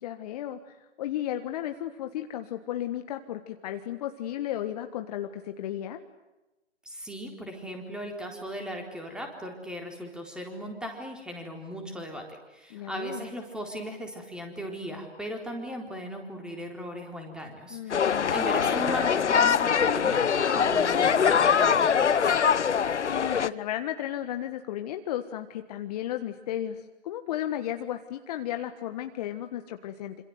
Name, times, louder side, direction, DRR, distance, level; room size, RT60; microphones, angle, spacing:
voice 1, 0.0-6.0 12.7-13.3 17.7-18.4 23.0-30.2, left 12 dB, 35° left, 7 dB, 1.5 m, -34 dB
voice 2, 6.9-22.4, equal, ahead, 2 dB, 4.1 m, -37 dB
sound 1, 17.9-23.5, left 7 dB, 75° left, 1.2 m, -23 dB
27.5 x 26.5 x 8.0 m, 1.0 s
hypercardioid pair, 140°, 35 cm